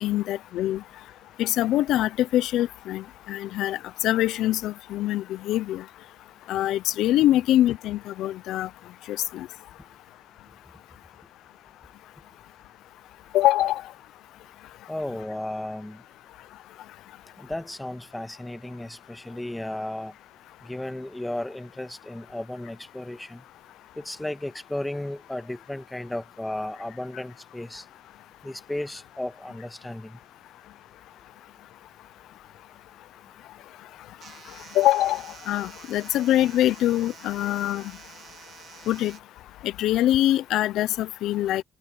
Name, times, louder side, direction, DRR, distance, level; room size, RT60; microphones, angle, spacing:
voice 1, 0.0-0.8 1.4-5.8 6.5-8.7 9.1-9.5 13.3-13.8 34.7-37.8 38.9-39.2 39.6-41.6, left 14 dB, 85° left, 0.5 m, -24 dB
voice 2, 14.9-16.0 17.4-20.1 20.6-23.4 24.0-27.8 28.4-30.2, left 1 dB, 10° left, 1.7 m, -34 dB
sound 1, 34.2-39.2, right 8 dB, 65° right, 2.8 m, -48 dB
cardioid pair, 90°, 0 cm